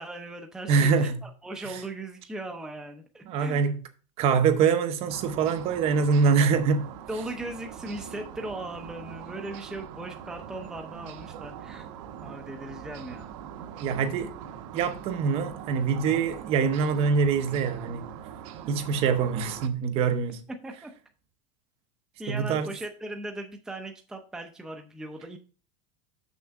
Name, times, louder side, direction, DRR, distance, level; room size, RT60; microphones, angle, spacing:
voice 1, 0.0-3.6 7.1-11.9 12.2-13.3 20.6-20.9 22.2-25.4, right 1 dB, 5° right, 0.6 m, -38 dB
voice 2, 0.7-1.2 1.7-1.8 3.3-3.8 4.2-6.9 13.8-14.4 14.7-18.1 18.7-20.4 22.3-22.7, right 5 dB, 35° right, 0.8 m, -24 dB
sound 1, 5.1-19.7, right 9 dB, 65° right, 0.9 m, -42 dB
6.8 x 6.4 x 3.5 m
supercardioid pair, 165°, 17 cm